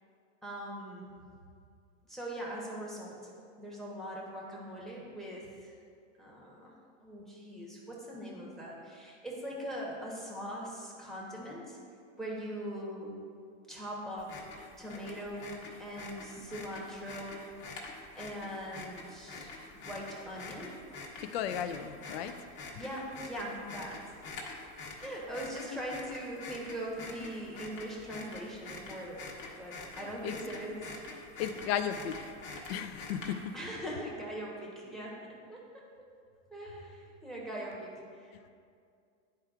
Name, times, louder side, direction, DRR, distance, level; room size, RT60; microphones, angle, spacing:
voice 1, 0.4-1.1 2.1-3.3 3.6-5.7 6.2-6.7 7.0-11.8 12.2-13.1 13.7-14.5 14.8-17.4 18.1-20.8 22.7-24.0 25.0-29.2 29.6-30.9 33.5-35.6 36.5-38.5, equal, ahead, -4 dB, 0.9 m, -41 dB
sound 1, 14.2-33.6, left 3 dB, 40° left, 1.3 m, -46 dB
voice 2, 21.3-22.3 30.2-30.3 31.4-32.2 32.7-33.4, left 9 dB, 55° left, 10 dB, 0.5 m, -34 dB
11.5 x 4.4 x 2.4 m, 2.3 s
supercardioid pair, 150°, 37 cm